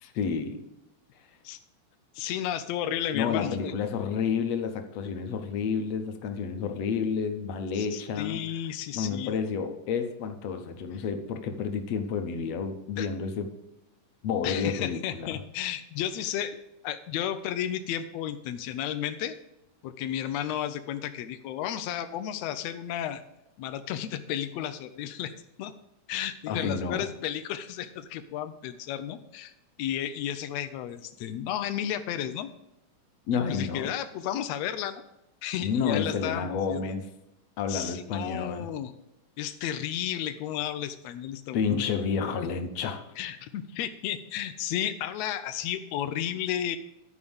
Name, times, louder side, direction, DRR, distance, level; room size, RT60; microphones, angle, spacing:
voice 1, 0.0-0.6 3.1-8.4 8.9-13.5 14.2-15.4 26.5-27.1 33.3-33.9 35.6-37.1 37.6-38.7 41.5-43.0, left 6 dB, 65° left, 7 dB, 1.8 m, -30 dB
voice 2, 2.1-3.7 7.8-9.3 13.0-13.1 14.4-19.3 19.8-23.2 23.6-25.3 25.6-25.7 26.1-29.5 29.8-32.5 33.3-35.0 35.4-36.8 37.7-38.9 39.4-41.9 43.2-46.8, left 10 dB, 85° left, 9 dB, 1.5 m, -33 dB
11.5 x 4.8 x 7.0 m, 0.89 s
omnidirectional pair, 3.7 m